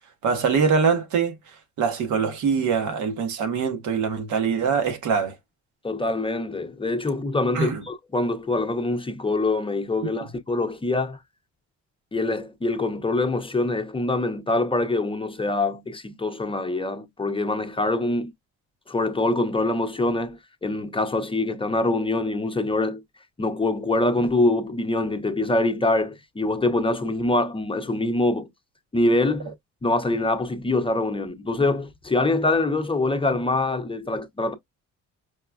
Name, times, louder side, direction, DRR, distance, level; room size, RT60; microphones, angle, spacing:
voice 1, 0.2-1.4 1.8-5.4 7.5-7.8 10.0-10.1, right 6 dB, 75° right, 1.0 m, -23 dB
voice 2, 5.8-11.2 12.1-18.3 18.9-23.0 23.4-28.5 28.9-29.5 29.8-34.5, left 2 dB, 20° left, 0.6 m, -24 dB
4.7 x 2.2 x 2.2 m
cardioid pair, 90°, 30 cm